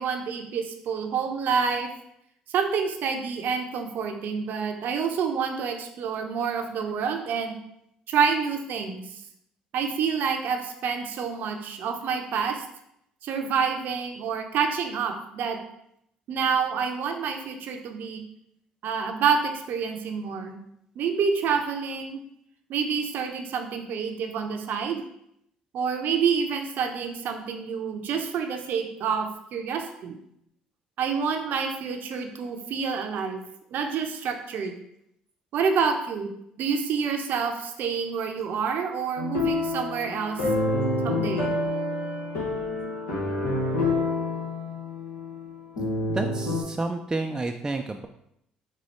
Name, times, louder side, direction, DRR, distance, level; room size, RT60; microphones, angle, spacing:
voice 1, 0.0-1.9 2.5-7.5 8.1-9.2 9.7-12.6 13.2-15.6 16.3-18.2 18.8-20.6 21.0-22.2 22.7-25.0 25.7-30.2 31.0-33.4 33.7-34.7 35.5-36.3 36.6-40.5 41.0-41.5, right 6 dB, 60° right, 4 dB, 0.6 m, -28 dB
sound 1, 39.2-46.6, left 2 dB, 80° left, 1.1 m, -28 dB
voice 2, 46.1-48.1, right 2 dB, 20° right, 4 dB, 0.3 m, -30 dB
4.2 x 2.2 x 4.3 m, 0.75 s
hypercardioid pair, 55°, 3 cm